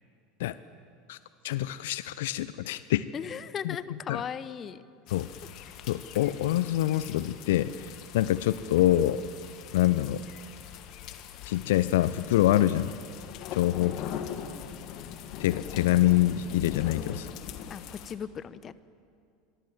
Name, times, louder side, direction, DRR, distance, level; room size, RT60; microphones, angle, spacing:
voice 1, 1.4-3.0 3.6-3.8 4.1-4.2 5.1-5.3 5.9-9.2 9.7-10.2 11.4-12.9 13.5-14.0 15.4-17.3, left 14 dB, 65° left, 15 dB, 0.6 m, -25 dB
voice 2, 3.1-4.8 13.8-14.0 17.7-18.7, left 8 dB, 30° left, 16 dB, 0.9 m, -37 dB
sound 1, 5.1-18.1, left 9 dB, 50° left, 1.8 m, -42 dB
26.0 x 23.0 x 7.5 m, 2.3 s
figure-of-eight pair, 75°, 0 cm